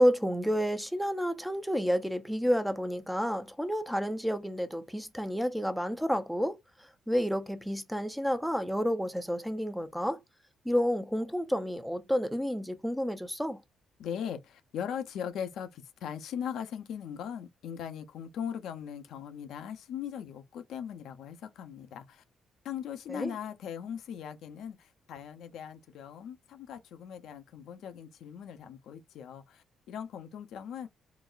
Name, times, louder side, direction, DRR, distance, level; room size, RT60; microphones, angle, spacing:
voice 1, 0.0-6.6 7.1-10.2 10.6-13.6 23.1-23.3, equal, ahead, 0.5 m, -30 dB
voice 2, 14.0-22.2 22.6-30.9, left 8 dB, 80° left, 0.5 m, -39 dB
3.8 x 2.0 x 2.4 m
cardioid pair, 90°, 0 cm